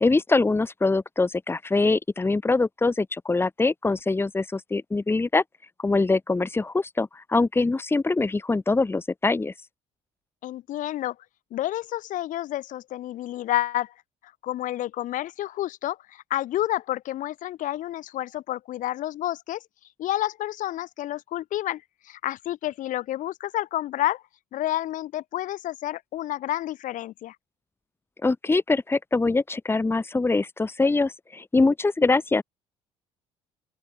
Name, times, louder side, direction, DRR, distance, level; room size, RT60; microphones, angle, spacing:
voice 1, 0.0-5.4 5.8-9.5 28.2-32.4, left 3 dB, 15° left, 1.1 m, -23 dB
voice 2, 10.4-11.1 11.5-13.9 14.4-19.6 20.0-24.2 24.5-27.3, left 14 dB, 65° left, 1.0 m, -30 dB
open air
supercardioid pair, 70°, 15 cm